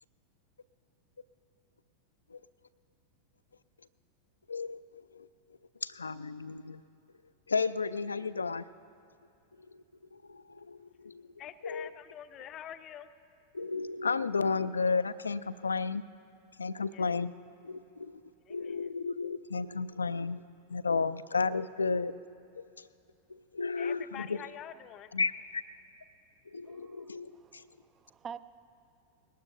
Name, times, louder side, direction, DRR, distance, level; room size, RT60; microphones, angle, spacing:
voice 1, 4.5-5.3 5.8-6.8 7.5-8.6 9.7-9.8 10.1-11.3 11.6-11.9 13.5-16.0 16.6-17.3 17.6-18.2 18.5-20.4 20.7-22.1 22.6-22.9 23.3-24.4 25.1-25.6 26.5-27.6, left 4 dB, 75° left, 0.3 m, -33 dB
voice 2, 11.4-13.1 16.9-17.2 18.4-18.9 23.8-25.1, left 10 dB, 30° left, 0.6 m, -46 dB
voice 3, 26.6-28.4, right 7 dB, 25° right, 0.5 m, -48 dB
21.0 x 18.5 x 2.7 m
figure-of-eight pair, 90°, 0 cm